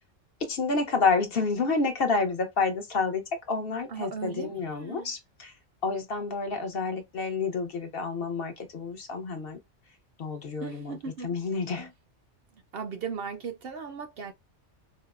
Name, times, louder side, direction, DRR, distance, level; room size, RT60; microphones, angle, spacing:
voice 1, 0.4-5.5 5.8-9.6 10.2-10.9 11.2-11.9, left 4 dB, 55° left, 0.9 m, -29 dB
voice 2, 3.9-5.2 10.6-11.4 11.8-11.9 12.5-14.3, right 5 dB, 60° right, 0.7 m, -37 dB
4.5 x 2.0 x 2.4 m
omnidirectional pair, 1.3 m